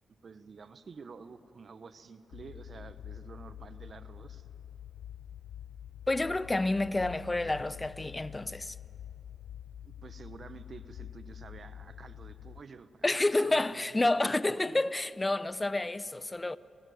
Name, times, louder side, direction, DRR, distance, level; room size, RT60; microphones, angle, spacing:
voice 1, 0.2-4.5 9.8-14.9, right 5 dB, 60° right, 0.9 m, -50 dB
sound 1, 2.3-12.6, left 10 dB, 85° left, 0.4 m, -47 dB
voice 2, 6.1-8.8 13.0-16.6, left 2 dB, 25° left, 0.6 m, -29 dB
21.5 x 16.5 x 9.3 m
supercardioid pair, 50°, 0 cm